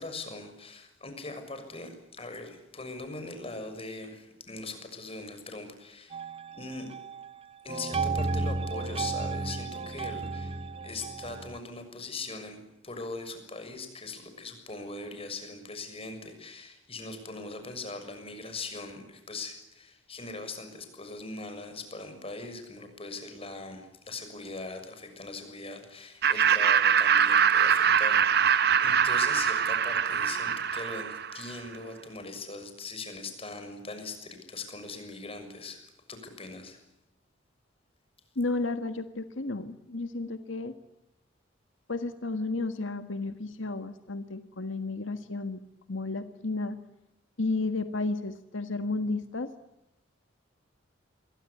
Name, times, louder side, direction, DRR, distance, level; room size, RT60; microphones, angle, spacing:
voice 1, 0.0-6.2 6.5-6.9 7.6-36.8, left 3 dB, 30° left, 8 dB, 6.6 m, -41 dB
sound 1, 6.1-7.3 7.7-11.6, right 3 dB, 30° right, 1.1 m, -33 dB
Laughter, 26.2-31.5, right 7 dB, 55° right, 1.3 m, -23 dB
voice 2, 38.3-40.7 41.9-45.6 45.9-46.8 47.4-49.5, left 3 dB, 85° left, 8 dB, 1.6 m, -32 dB
28.5 x 23.5 x 8.5 m, 0.91 s
head